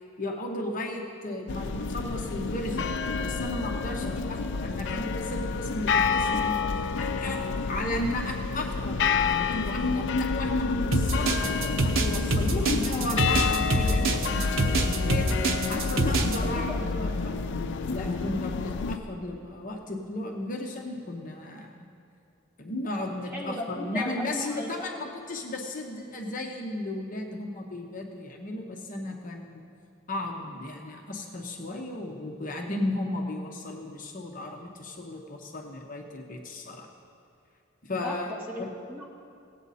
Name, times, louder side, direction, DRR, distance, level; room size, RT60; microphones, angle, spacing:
voice 1, 0.2-2.9 3.2-7.4 7.7-15.3 15.7-17.6 17.9-21.7 22.6-29.6 30.1-36.9 37.8-38.3, left 1 dB, 40° left, 1 dB, 0.9 m, -35 dB
sound 1, 1.5-19.0, left 4 dB, 60° left, 0.4 m, -29 dB
sound 2, 10.9-16.4, right 2 dB, 80° right, 0.9 m, -25 dB
voice 2, 16.4-16.8 23.3-25.0 38.0-38.2 38.5-39.1, left 1 dB, 10° right, -3 dB, 1.6 m, -37 dB
17.5 x 8.3 x 4.1 m, 2.6 s
head